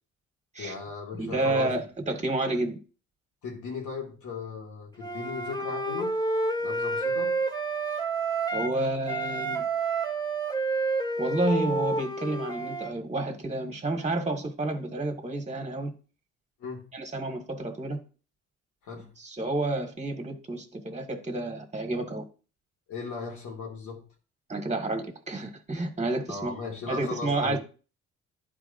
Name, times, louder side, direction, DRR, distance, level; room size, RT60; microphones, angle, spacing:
voice 1, 0.6-1.8 3.4-6.2 6.6-7.4 16.6-16.9 18.8-19.1 22.9-24.1 26.3-27.6, left 4 dB, 80° left, 2.4 m, -37 dB
voice 2, 1.2-2.8 8.5-9.6 11.2-15.9 16.9-18.0 19.2-22.3 24.5-26.5 26.9-27.6, right 2 dB, 25° right, 1.9 m, -30 dB
Wind instrument woodwind instrument, 5.0-8.8 9.1-12.9, right 3 dB, 15° left, 1.9 m, -29 dB
11.5 x 4.7 x 2.6 m
cardioid pair, 90°, 30 cm